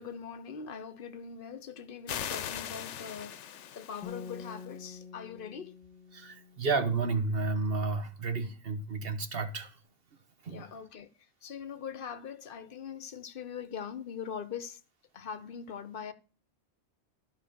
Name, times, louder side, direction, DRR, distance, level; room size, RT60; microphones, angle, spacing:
voice 1, 0.0-5.8 10.5-11.1 11.4-14.8 15.1-16.1, left 7 dB, 55° left, 1.0 m, -42 dB
sound 1, 2.1-4.6, left 10 dB, 80° left, 1.0 m, -40 dB
sound 2, 4.0-7.2, left 5 dB, 5° left, 2.7 m, -47 dB
voice 2, 6.1-9.7 10.4-10.6, right 3 dB, 55° right, 1.4 m, -31 dB
11.5 x 5.8 x 6.9 m
omnidirectional pair, 1.2 m